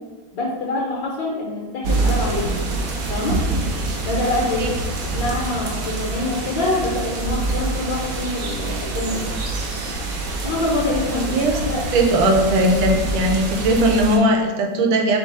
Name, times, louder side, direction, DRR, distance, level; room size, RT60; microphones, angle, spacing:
voice 1, 0.3-2.6 3.1-3.4 4.0-4.7 5.1-9.3 10.4-11.4 11.7-11.8, left 2 dB, 70° left, -3 dB, 1.5 m, -25 dB
sound 1, 1.8-14.2, right 3 dB, 60° right, 0.9 m, -26 dB
voice 2, 11.1-15.2, right 1 dB, 90° right, 2 dB, 1.5 m, -19 dB
3.7 x 3.6 x 3.9 m, 1.2 s
omnidirectional pair, 2.1 m